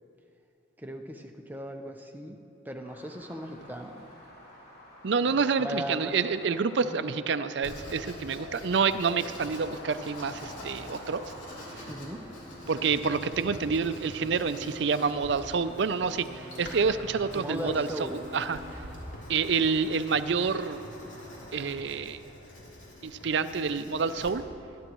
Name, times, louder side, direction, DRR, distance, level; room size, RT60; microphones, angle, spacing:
voice 1, 0.8-2.4 2.6-4.1 5.3-6.2 6.8-7.1 11.9-12.2 17.3-18.2, equal, 10° right, 4 dB, 0.7 m, -38 dB
sound 1, 2.8-21.7, left 1 dB, 50° left, 3.2 m, -50 dB
voice 2, 5.0-11.2 12.7-16.3 16.6-17.9 18.3-18.6 19.3-20.8 21.5-22.2 23.0-24.4, right 5 dB, 60° right, 12 dB, 0.5 m, -28 dB
Writing, 7.6-24.3, left 1 dB, 75° left, 3.2 m, -46 dB
sound 2, 10.4-19.4, equal, 25° right, 2.5 m, -50 dB
23.5 x 11.0 x 3.1 m, 2.7 s
head